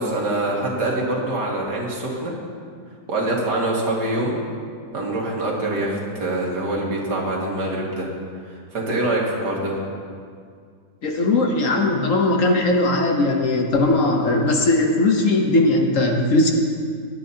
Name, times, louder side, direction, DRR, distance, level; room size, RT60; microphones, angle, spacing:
voice 1, 0.0-2.3 3.1-4.3 4.9-8.1 8.5-9.8, right 1 dB, 80° right, -3 dB, 2.5 m, -24 dB
voice 2, 11.0-16.5, left 2 dB, 55° left, 2 dB, 1.2 m, -19 dB
17.0 x 10.0 x 2.8 m, 2.1 s
omnidirectional pair, 1.8 m